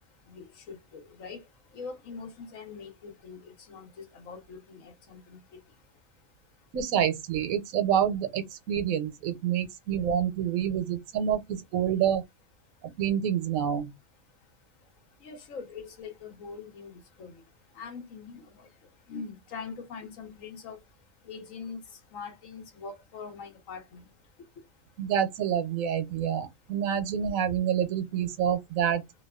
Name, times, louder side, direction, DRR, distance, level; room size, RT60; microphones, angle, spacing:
voice 1, 0.3-1.4 1.7-5.4 15.2-17.3 17.8-18.7 19.1-20.8 21.3-21.8 22.1-24.1, left 5 dB, 75° left, 1.2 m, -43 dB
voice 2, 6.7-12.2 13.0-13.9 25.0-29.0, right 9 dB, 80° right, 1.1 m, -27 dB
2.8 x 2.2 x 2.2 m
omnidirectional pair, 1.4 m